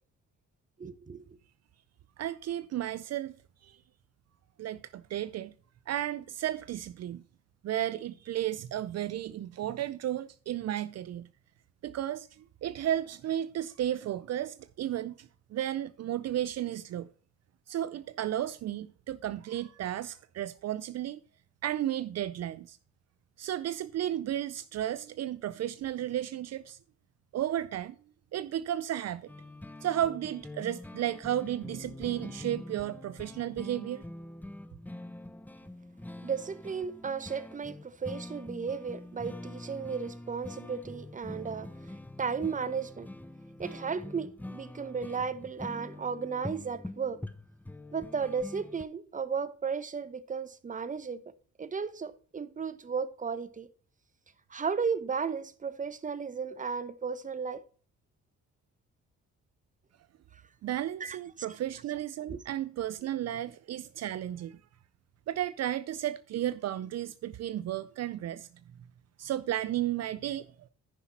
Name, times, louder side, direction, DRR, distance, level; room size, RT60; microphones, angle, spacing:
voice 1, 0.8-1.2 36.2-43.1 43.6-47.2 47.9-51.2 51.6-53.7 54.5-57.6 60.3-60.4 61.0-61.2 62.3-62.4, right 6 dB, 25° right, 0.9 m, -34 dB
voice 2, 2.2-3.3 3.6-3.8 4.6-5.5 5.9-7.2 7.6-11.3 11.8-17.1 17.7-21.2 21.6-22.8 23.4-26.8 27.3-28.0 28.3-29.3 29.8-34.0 60.6-64.6 65.3-68.5 69.2-70.7, right 12 dB, 60° right, 0.5 m, -33 dB
sound 1, 29.3-48.8, left 1 dB, 5° left, 0.6 m, -44 dB
10.0 x 5.8 x 4.2 m
cardioid pair, 90°, 30 cm